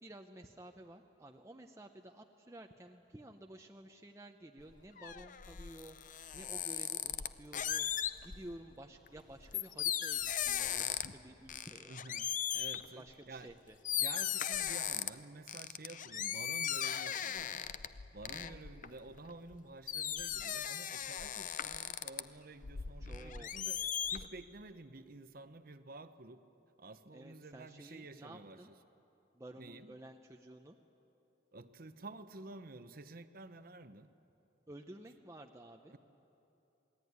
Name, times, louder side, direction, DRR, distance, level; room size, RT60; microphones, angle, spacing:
voice 1, 0.0-6.0 6.3-7.9 8.2-11.9 12.9-13.8 18.3-18.6 23.0-23.5 27.1-28.7 29.3-30.8 34.7-35.9, right 1 dB, 15° right, 3 dB, 0.7 m, -53 dB
sound 1, 4.6-8.5 9.1-11.2 11.5-12.9 13.5-13.6 13.8-15.1 15.5-19.6 19.9-22.2 22.6-24.3, left 9 dB, 45° left, 0.6 m, -37 dB
voice 2, 11.9-13.5 14.0-17.6 18.1-23.8 24.1-26.4 26.8-28.6 29.6-29.9 31.5-34.1 35.9-36.0, right 2 dB, 50° right, 11 dB, 0.9 m, -51 dB
27.5 x 19.5 x 9.5 m, 3.0 s
head